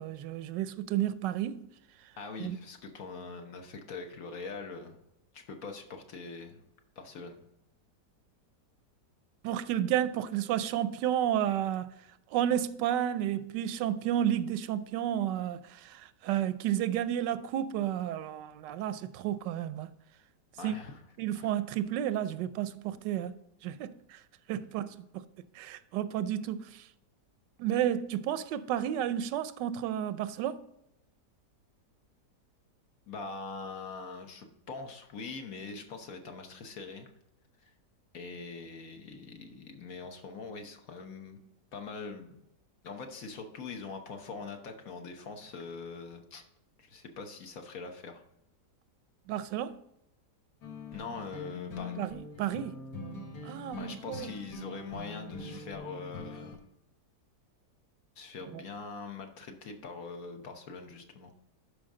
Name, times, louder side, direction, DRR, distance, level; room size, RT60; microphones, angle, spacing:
voice 1, 0.0-1.7 2.4-2.6 9.4-11.9 12.3-19.9 20.6-20.8 21.2-23.4 23.6-24.2 24.5-25.3 25.5-26.8 27.6-30.6 49.3-49.8 52.0-52.8 53.4-54.3 58.5-58.6, right 11 dB, 90° right, 1.2 m, -31 dB
voice 2, 2.2-5.0 5.3-6.6 7.0-7.4 20.6-21.0 21.4-21.5 33.1-37.1 37.6-37.7 38.1-41.4 41.7-42.4 42.8-46.4 46.8-48.2 50.9-52.0 53.7-56.6 58.2-61.3, left 4 dB, 60° left, 1.4 m, -43 dB
sound 1, 50.6-56.6, left 3 dB, 75° left, 2.0 m, -43 dB
11.5 x 5.1 x 3.7 m
omnidirectional pair, 1.8 m